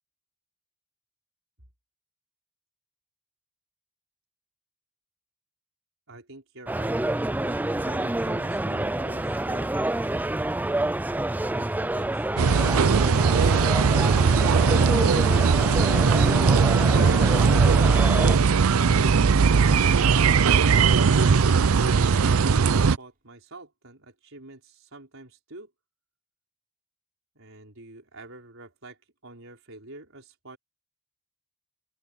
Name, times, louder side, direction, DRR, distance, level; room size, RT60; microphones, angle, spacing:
voice 1, 6.1-7.0 7.3-10.3 11.3-13.9 19.0-19.4 20.2-25.7 27.4-30.6, right 2 dB, 70° right, 5.3 m, -47 dB
sound 1, 6.7-18.4, right 1 dB, 10° right, 0.4 m, -28 dB
sound 2, 12.4-23.0, right 5 dB, 85° right, 0.6 m, -19 dB
Bowed string instrument, 18.3-22.6, right 2 dB, 45° right, 3.5 m, -39 dB
open air
head